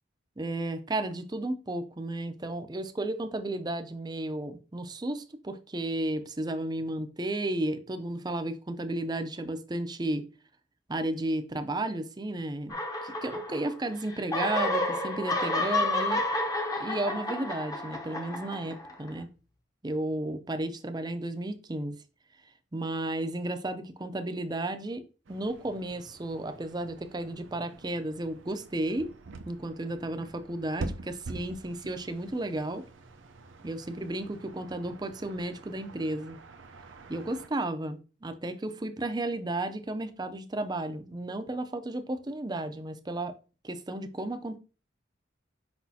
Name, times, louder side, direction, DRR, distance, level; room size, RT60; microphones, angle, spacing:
voice 1, 0.4-10.3 10.9-12.8 13.0-16.2 16.8-19.3 19.8-22.0 22.7-25.0 25.3-29.1 29.5-32.8 33.6-36.4 37.1-43.3 43.6-44.6, right 1 dB, 20° right, 0.5 m, -33 dB
sound 1, 12.7-13.8 14.1-19.1, left 2 dB, 20° left, 0.8 m, -30 dB
sound 2, 25.2-37.5, right 2 dB, 90° right, 0.6 m, -45 dB
6.1 x 5.5 x 2.8 m
head